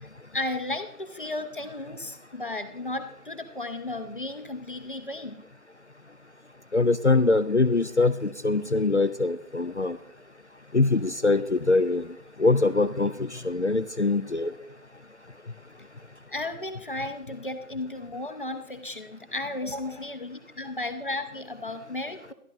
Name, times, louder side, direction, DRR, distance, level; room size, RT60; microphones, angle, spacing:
voice 1, 0.3-5.4 16.3-22.3, left 2 dB, 35° left, 7 dB, 0.9 m, -34 dB
voice 2, 6.7-10.0 10.7-12.1 12.4-14.5, left 3 dB, 50° left, 12 dB, 0.5 m, -23 dB
12.0 x 11.5 x 3.8 m, 0.73 s
figure-of-eight pair, 165°, 44 cm